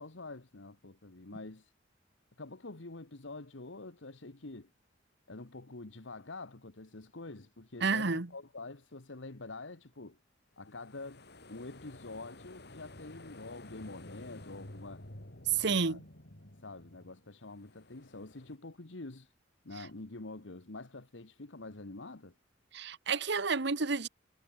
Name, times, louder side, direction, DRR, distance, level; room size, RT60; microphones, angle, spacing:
voice 1, 0.0-1.7 2.4-4.7 5.3-10.2 10.6-15.1 15.5-16.0 16.6-19.3 19.6-22.3, left 2 dB, 75° left, 1.5 m, -46 dB
voice 2, 7.8-8.3 15.5-16.0 22.7-24.1, right 5 dB, 65° right, 1.3 m, -30 dB
sound 1, 10.7-18.6, left 1 dB, 60° left, 4.1 m, -52 dB
head